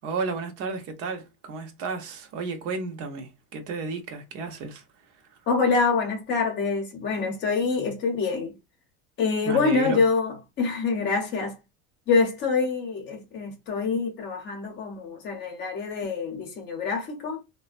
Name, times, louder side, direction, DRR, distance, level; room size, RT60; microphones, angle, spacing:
voice 1, 0.0-4.8 5.3-5.4 9.5-10.0, right 4 dB, 45° right, 0.7 m, -32 dB
voice 2, 5.5-8.5 9.2-11.6 12.1-17.4, left 4 dB, 30° left, 0.7 m, -26 dB
3.3 x 2.1 x 2.4 m
cardioid pair, 160°, 33 cm